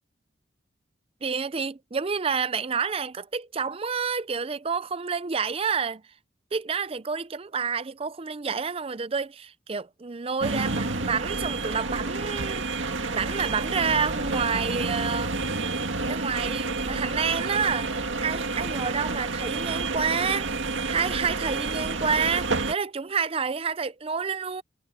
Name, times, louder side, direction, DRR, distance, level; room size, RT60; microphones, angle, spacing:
voice 1, 1.2-6.0 6.5-12.6 13.1-15.4 16.1-18.0 18.2-20.6 20.9-24.6, right 5 dB, 30° right, 0.5 m, -29 dB
sound 1, 10.4-22.7, right 3 dB, 85° right, 2.0 m, -29 dB
head